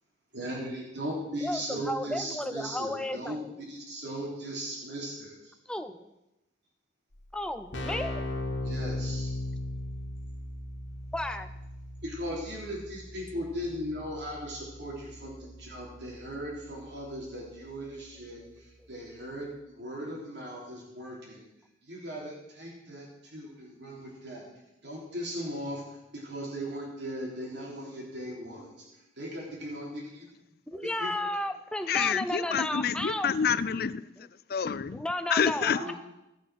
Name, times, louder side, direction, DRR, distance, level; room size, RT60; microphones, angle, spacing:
voice 1, 0.3-3.4 3.7-5.5 8.6-9.4 12.0-21.4 21.8-24.5 24.8-28.8 29.2-30.2 30.7-31.4 35.6-35.9, equal, 60° right, 3.3 m, -38 dB
voice 2, 1.4-3.5 5.7-6.0 7.3-8.2 11.1-11.5 30.7-33.3 34.9-35.9, left 1 dB, 5° left, 0.6 m, -33 dB
Keyboard (musical), 7.1-7.2 7.4-18.0, left 1 dB, 75° left, 1.7 m, -39 dB
voice 3, 31.9-34.0 34.5-35.0 35.3-35.9, left 7 dB, 50° left, 0.4 m, -28 dB
16.0 x 6.3 x 6.3 m
head